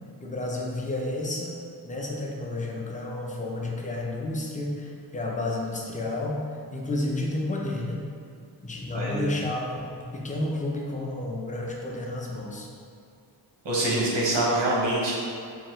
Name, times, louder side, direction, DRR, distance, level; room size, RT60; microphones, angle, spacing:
voice 1, 0.2-6.4 6.7-8.0 8.6-12.7, left 2 dB, 20° left, -2 dB, 0.4 m, -31 dB
voice 2, 13.6-15.1, right 1 dB, 90° right, -5 dB, 1.0 m, -25 dB
4.6 x 2.6 x 3.0 m, 2.3 s
wide cardioid pair, 180°, 42 cm